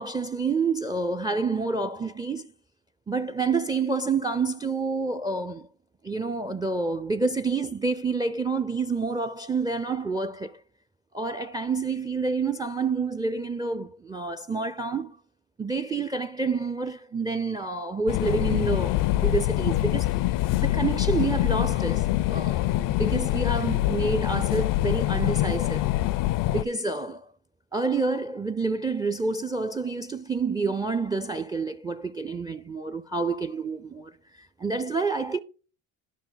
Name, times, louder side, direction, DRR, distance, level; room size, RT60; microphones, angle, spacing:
voice 1, 0.0-2.5 3.1-5.7 6.0-10.6 11.1-15.2 15.6-20.1 20.6-25.9 26.4-27.3 27.7-35.4, right 4 dB, 10° right, 0.4 m, -28 dB
sound 1, 18.1-26.6, left 16 dB, 65° left, 0.5 m, -25 dB
11.5 x 5.5 x 3.9 m
supercardioid pair, 85°, 36 cm